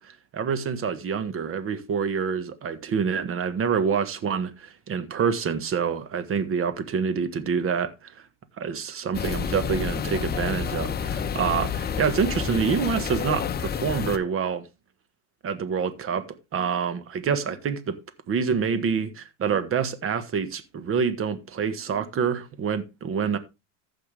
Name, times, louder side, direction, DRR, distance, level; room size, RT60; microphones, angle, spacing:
voice 1, 0.0-8.1 8.6-14.6 15.4-16.2 16.5-18.0 18.3-23.4, right 6 dB, 35° right, 1.5 m, -27 dB
sound 1, 9.1-14.2, left 7 dB, 25° left, 0.9 m, -29 dB
14.5 x 5.9 x 3.5 m
supercardioid pair, 105°, 37 cm